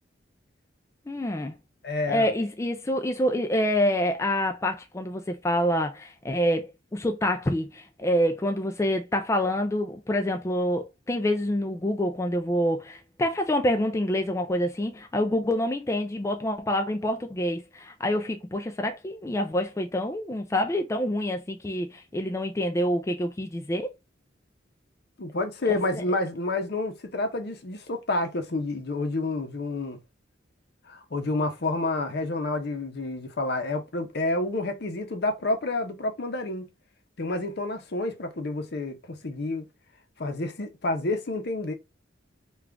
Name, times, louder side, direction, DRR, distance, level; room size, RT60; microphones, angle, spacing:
voice 1, 1.1-1.6 2.1-23.9, equal, 15° left, 0.4 m, -27 dB
voice 2, 1.8-2.3 25.2-30.0 30.9-36.6 37.2-39.7 40.2-41.7, left 2 dB, 60° left, 0.7 m, -29 dB
3.6 x 2.4 x 3.3 m
head